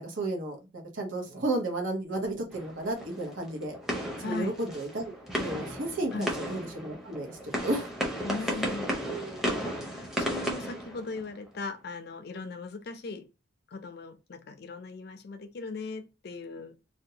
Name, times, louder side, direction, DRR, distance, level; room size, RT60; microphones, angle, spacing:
voice 1, 0.0-3.7 4.2-7.9 8.4-8.6 9.1-9.4, right 2 dB, 90° right, 0.9 m, -33 dB
sound 1, 2.5-11.6, equal, ahead, 0.5 m, -34 dB
voice 2, 4.2-4.5 6.1-6.3 8.2-9.2 9.9-13.2 13.7-16.9, left 3 dB, 55° left, 0.4 m, -39 dB
2.5 x 2.1 x 2.8 m
head